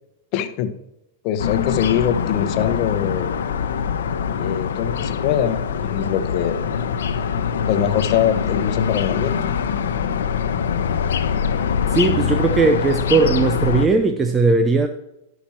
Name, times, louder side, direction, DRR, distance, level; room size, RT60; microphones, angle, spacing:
voice 1, 0.3-0.7 1.2-3.3 4.4-6.6 7.7-9.5, left 10 dB, 45° left, 10 dB, 0.9 m, -23 dB
sound 1, 1.4-13.9, left 7 dB, 85° left, 0.8 m, -23 dB
voice 2, 11.9-14.9, right 3 dB, 15° right, 6 dB, 0.6 m, -18 dB
11.5 x 6.0 x 4.4 m, 0.91 s
hypercardioid pair, 135°, 0 cm